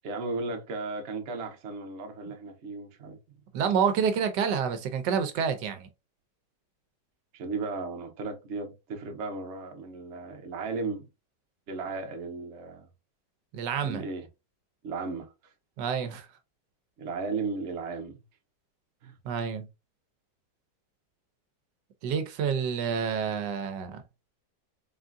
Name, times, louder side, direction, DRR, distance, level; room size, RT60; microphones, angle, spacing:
voice 1, 0.0-3.2 7.3-11.1 11.7-12.9 13.8-14.3 14.8-15.3 17.0-18.2 19.0-19.1, right 3 dB, 50° right, 1.0 m, -35 dB
voice 2, 3.5-5.9 13.5-14.0 15.8-16.3 19.2-19.7 22.0-24.0, right 7 dB, 80° right, 1.2 m, -28 dB
4.0 x 3.5 x 2.5 m
omnidirectional pair, 1.9 m